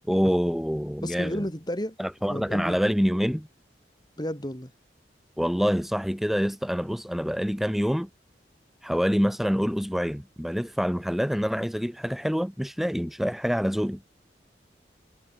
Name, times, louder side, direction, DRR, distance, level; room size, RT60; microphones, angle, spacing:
voice 1, 0.1-1.4 2.0-3.5 5.4-8.1 8.8-14.0, equal, ahead, 2.1 m, -26 dB
voice 2, 1.0-2.0 2.3-2.8 4.2-4.7, equal, 25° left, 5.7 m, -32 dB
head